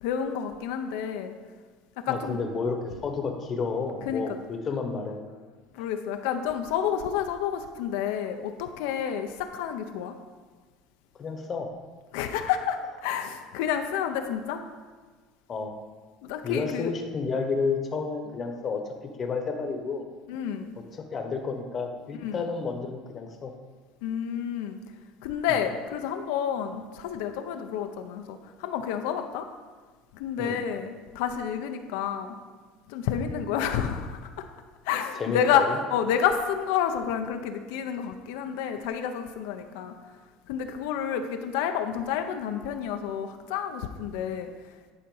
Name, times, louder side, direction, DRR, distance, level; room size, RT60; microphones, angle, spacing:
voice 1, 0.0-1.4 2.0-2.4 4.1-4.4 5.7-10.1 12.1-14.6 16.2-16.9 20.3-20.7 22.2-22.4 24.0-24.8 25.2-29.5 30.1-32.4 32.9-34.4 34.8-35.6 35.9-40.0 40.5-44.9, left 8 dB, 80° left, 6 dB, 0.6 m, -29 dB
voice 2, 2.1-5.2 5.8-5.9 11.2-11.7 15.5-15.7 16.4-20.0 20.9-23.5 25.5-25.6 30.4-30.6 35.2-35.8, left 4 dB, 30° left, 4 dB, 1.0 m, -31 dB
10.5 x 4.2 x 5.5 m, 1.4 s
cardioid pair, 140°, 0 cm